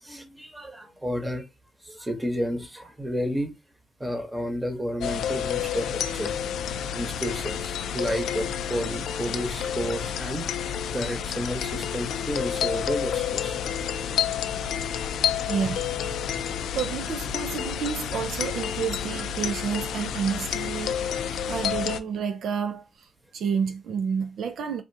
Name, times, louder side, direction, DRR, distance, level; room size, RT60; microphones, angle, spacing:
voice 1, 0.0-1.4 1.8-3.5 4.0-6.3 6.9-13.6, equal, 10° right, 1.0 m, -31 dB
sound 1, 5.0-22.0, left 8 dB, 75° left, 0.3 m, -29 dB
voice 2, 15.5-24.8, right 6 dB, 65° right, 0.4 m, -30 dB
3.3 x 2.5 x 2.7 m
cardioid pair, 90°, 0 cm